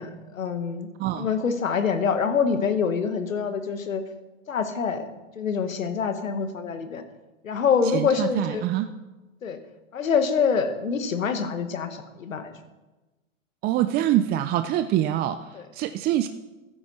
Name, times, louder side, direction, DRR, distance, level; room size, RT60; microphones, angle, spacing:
voice 1, 0.0-0.9 1.2-4.0 4.5-5.0 5.4-7.0 7.4-8.6 9.4-9.6 9.9-12.5 15.5-15.6, left 6 dB, 90° left, 8 dB, 1.5 m, -25 dB
voice 2, 7.8-8.9 13.6-16.3, right 12 dB, 25° right, 10 dB, 0.4 m, -25 dB
13.5 x 10.5 x 4.2 m, 1.1 s
hypercardioid pair, 105°, 39 cm